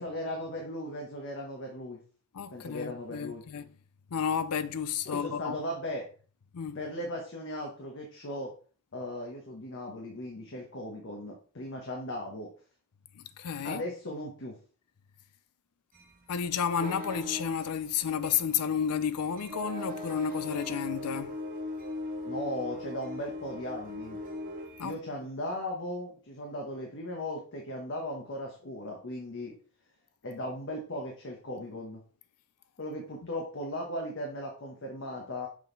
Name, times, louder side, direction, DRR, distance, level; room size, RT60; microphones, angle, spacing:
voice 1, 0.0-2.0 2.5-3.4 5.0-6.1 6.7-8.5 8.9-12.5 13.6-14.6 22.2-24.2 24.8-29.5 30.2-32.0 32.8-35.5, left 1 dB, 55° left, 1.2 m, -37 dB
voice 2, 2.3-3.7 4.1-5.6 6.5-6.8 13.1-13.8 16.3-21.4 24.8-25.0, left 7 dB, 85° left, 0.5 m, -31 dB
sound 1, 15.9-24.9, left 1 dB, 40° right, 1.1 m, -39 dB
6.5 x 3.8 x 3.9 m
head